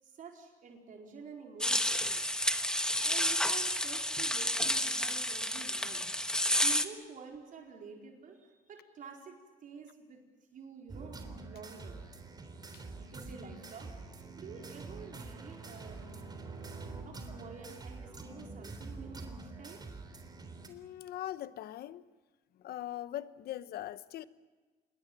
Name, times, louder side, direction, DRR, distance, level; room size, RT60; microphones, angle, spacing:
voice 1, 0.0-2.1 3.0-6.0 6.6-10.2 10.5-12.0 13.0-16.0 17.0-19.9, right 5 dB, 50° right, 4.7 m, -49 dB
sound 1, 1.6-6.9, left 1 dB, 5° left, 1.4 m, -30 dB
sound 2, 10.9-20.7, right 3 dB, 25° right, 3.6 m, -46 dB
voice 2, 20.7-22.0 22.6-24.3, left 13 dB, 70° left, 1.0 m, -41 dB
27.0 x 21.0 x 7.5 m
cardioid pair, 110°, 17 cm